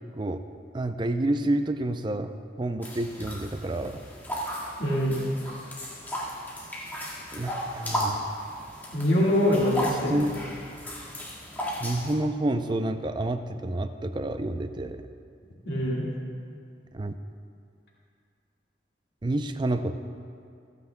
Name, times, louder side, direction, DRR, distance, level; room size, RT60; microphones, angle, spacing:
voice 1, 0.7-4.0 7.3-8.3 10.1-10.3 11.8-15.1 16.9-17.1 19.2-20.0, right 1 dB, 25° right, 9 dB, 0.5 m, -29 dB
sound 1, 2.8-12.2, equal, 10° left, 1.8 m, -35 dB
voice 2, 4.8-5.2 8.9-10.3 15.7-16.1, left 1 dB, 70° left, -5 dB, 1.8 m, -24 dB
28.0 x 9.4 x 2.2 m, 2.4 s
head